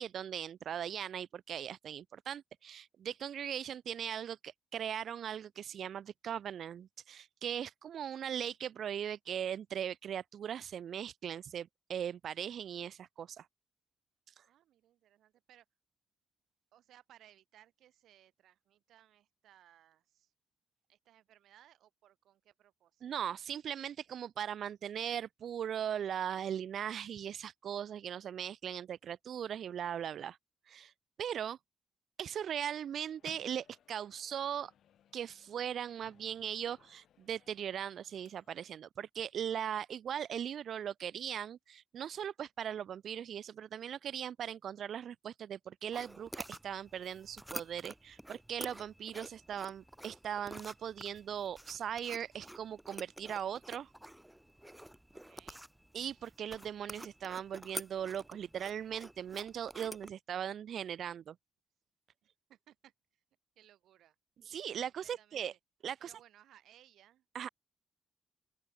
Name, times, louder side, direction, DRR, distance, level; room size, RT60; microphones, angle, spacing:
voice 1, 0.0-13.5 14.4-14.5 23.0-30.4 30.7-30.9 31.2-31.6 32.2-34.7 35.1-53.9 55.9-61.4 64.5-65.5 65.8-66.1 67.3-67.5, right 9 dB, 60° right, 0.3 m, -39 dB
voice 2, 14.5-15.6 16.7-20.3 20.9-23.3 55.1-55.6 62.2-63.2 63.5-64.1 64.8-65.6 66.0-67.2, right 12 dB, 90° right, 6.7 m, -63 dB
Microwave oven, 32.8-38.8, left 10 dB, 70° left, 1.5 m, -64 dB
sound 1, 45.9-60.1, right 1 dB, 5° right, 0.8 m, -49 dB
open air
cardioid pair, 145°, 0 cm